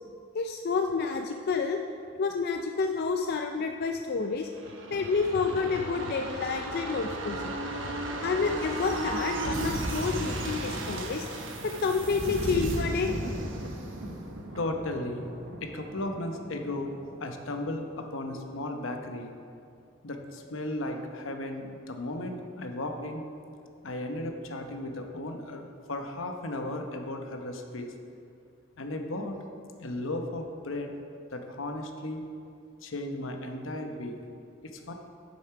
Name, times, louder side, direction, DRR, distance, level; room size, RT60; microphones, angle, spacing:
voice 1, 0.3-1.8 2.2-4.5 4.9-7.6 8.2-11.3 11.6-13.1, left 4 dB, 50° left, 4 dB, 0.4 m, -29 dB
sound 1, 4.4-17.9 18.2-18.3, right 1 dB, 70° right, 1.1 m, -35 dB
voice 2, 14.6-15.3 15.6-16.9 17.2-19.3 20.0-23.2 23.8-27.9 28.8-29.4 29.8-30.9 31.3-32.2 32.8-34.2 34.6-34.9, left 1 dB, 80° left, 4 dB, 0.9 m, -35 dB
7.8 x 7.1 x 5.8 m, 2.5 s
head